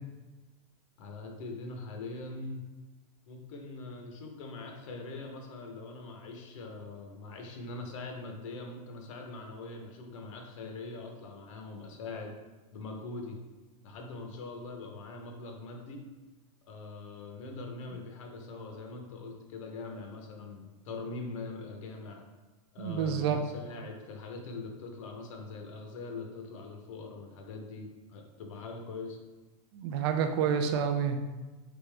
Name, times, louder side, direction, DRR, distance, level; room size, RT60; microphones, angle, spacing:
voice 1, 1.0-2.6 3.3-12.3 12.7-13.4 13.8-16.0 16.7-22.2 22.7-29.2, left 3 dB, 55° left, 3 dB, 0.8 m, -42 dB
voice 2, 22.8-23.4 29.7-31.2, right 7 dB, 45° right, 7 dB, 0.4 m, -28 dB
3.8 x 3.5 x 3.3 m, 1.2 s
supercardioid pair, 165°, 19 cm